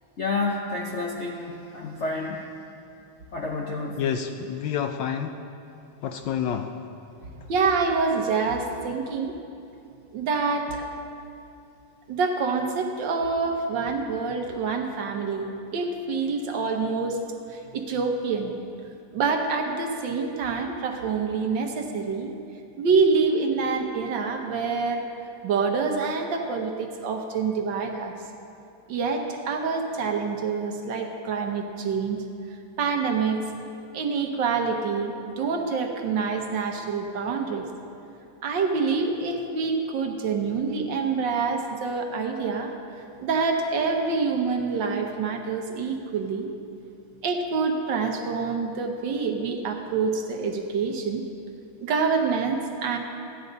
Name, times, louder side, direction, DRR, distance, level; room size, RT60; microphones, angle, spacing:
voice 1, 0.2-2.4 3.3-4.0, left 3 dB, 60° left, -1 dB, 0.7 m, -30 dB
voice 2, 4.0-5.4 6.0-6.7, left 8 dB, 75° left, 6 dB, 1.1 m, -28 dB
voice 3, 7.5-9.3 10.1-10.9 12.1-17.2 17.5-18.5 19.1-22.3 22.8-25.0 25.4-28.1 28.9-32.2 32.8-33.4 33.9-37.6 38.4-42.7 43.2-46.5 47.2-51.2 51.8-53.0, right 4 dB, 65° right, 4 dB, 1.5 m, -26 dB
15.0 x 10.0 x 4.0 m, 2.7 s
omnidirectional pair, 2.3 m